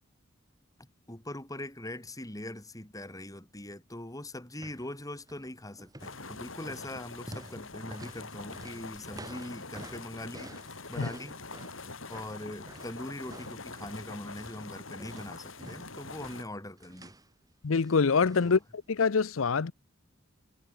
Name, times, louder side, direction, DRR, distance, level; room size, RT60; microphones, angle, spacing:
voice 1, 0.8-10.5 10.9-11.4 12.1-17.1 18.4-18.6, left 1 dB, 20° left, 3.5 m, -42 dB
sound 1, 4.5-4.9 5.2-5.5 5.8-14.7 15.0-17.3 17.8-18.6 18.9-19.0, right 1 dB, 20° right, 2.7 m, -49 dB
sound 2, 6.0-16.4, left 3 dB, 75° left, 7.2 m, -44 dB
voice 2, 17.6-18.6 18.9-19.7, left 5 dB, 90° left, 0.7 m, -25 dB
head